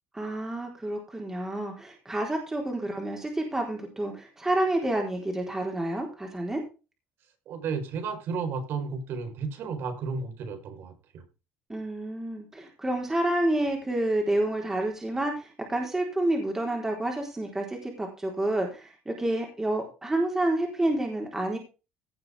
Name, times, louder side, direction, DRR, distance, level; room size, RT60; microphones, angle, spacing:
voice 1, 0.1-6.6 11.7-21.6, right 1 dB, 10° right, 4.0 m, -29 dB
voice 2, 7.5-11.2, right 5 dB, 60° right, 4.4 m, -33 dB
17.0 x 7.6 x 3.6 m
cardioid pair, 130°, 4 cm